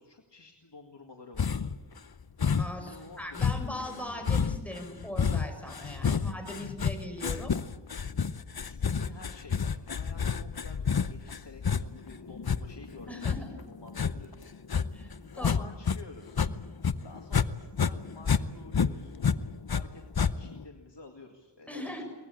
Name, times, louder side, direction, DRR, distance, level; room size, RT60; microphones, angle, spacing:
voice 1, 0.0-1.6 2.8-3.8 6.1-6.2 8.6-14.6 15.3-16.4 17.0-19.2 19.6-22.0, left 3 dB, 90° left, 1 dB, 2.2 m, -50 dB
sound 1, 1.4-1.8 2.4-2.9 3.3-16.0 16.3-17.5 17.7-19.8 20.1-20.6, left 6 dB, 60° left, 0.8 m, -29 dB
voice 2, 2.6-7.5 13.1-13.6 14.9-15.6 21.7-22.0, left 1 dB, 5° left, 4 dB, 6.0 m, -40 dB
23.5 x 19.5 x 8.6 m, 1.2 s
wide cardioid pair, 45°, 41 cm